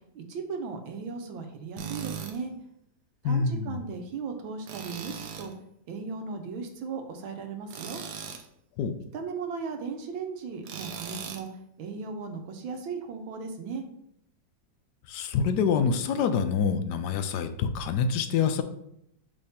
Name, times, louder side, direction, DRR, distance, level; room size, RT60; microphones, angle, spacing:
voice 1, 0.1-2.5 3.2-5.5 5.9-8.0 9.1-11.5 11.8-13.8, right 5 dB, 85° right, 5 dB, 1.6 m, -36 dB
Tools, 1.8-2.4 4.7-5.5 7.7-8.5 10.6-11.5, right 7 dB, 65° right, 1.2 m, -38 dB
voice 2, 3.2-3.8 8.8-9.0 15.1-18.6, left 6 dB, 70° left, 9 dB, 1.1 m, -26 dB
6.4 x 3.5 x 4.2 m, 0.76 s
omnidirectional pair, 2.1 m